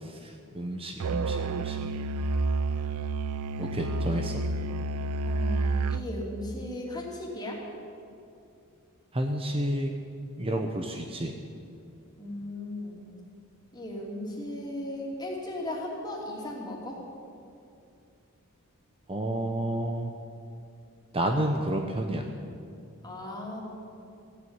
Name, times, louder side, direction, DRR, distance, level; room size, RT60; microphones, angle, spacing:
voice 1, 0.0-1.9 3.6-4.4 9.1-9.9 10.4-11.3 19.1-20.1 21.1-22.3, right 1 dB, 25° right, 4 dB, 0.8 m, -30 dB
Musical instrument, 1.0-6.1, right 3 dB, 85° right, 0.4 m, -29 dB
voice 2, 5.2-7.6 12.2-13.0 13.7-17.0 23.0-23.6, left 1 dB, 20° left, -2 dB, 2.8 m, -36 dB
15.0 x 8.5 x 9.5 m, 2.5 s
head